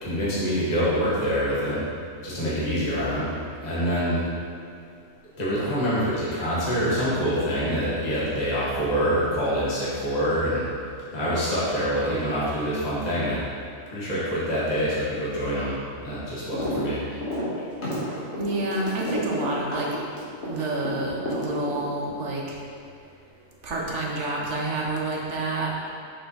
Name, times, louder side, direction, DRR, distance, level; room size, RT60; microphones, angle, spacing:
voice 1, 0.0-1.8 2.2-4.3 5.4-10.6 11.1-13.4 13.9-17.0, equal, 30° left, -9 dB, 1.5 m, -26 dB
sound 1, 16.5-16.8 17.1-20.9 21.3-22.1, left 1 dB, 55° left, 1.7 m, -30 dB
voice 2, 18.3-19.9 20.5-22.6 23.6-25.9, right 2 dB, 65° right, -2 dB, 1.2 m, -28 dB
6.6 x 5.3 x 3.0 m, 2.3 s
omnidirectional pair, 1.4 m